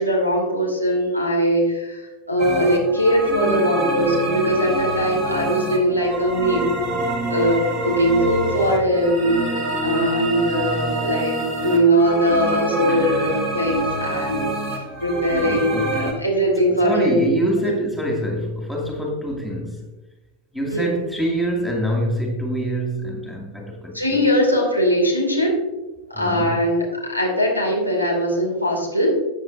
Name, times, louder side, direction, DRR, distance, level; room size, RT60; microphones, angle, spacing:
voice 1, 0.0-6.7 7.3-17.3 20.7-20.9 23.9-25.5 26.1-29.1, equal, 90° right, 1 dB, 2.6 m, -21 dB
sound 1, 2.4-16.1, right 2 dB, 35° right, 2.0 m, -26 dB
voice 2, 12.9-13.3 15.4-16.1 16.8-19.9 20.5-24.2 26.1-26.6, right 1 dB, ahead, 0 dB, 2.2 m, -25 dB
14.0 x 8.3 x 2.7 m, 1.1 s
figure-of-eight pair, 90°, 0 cm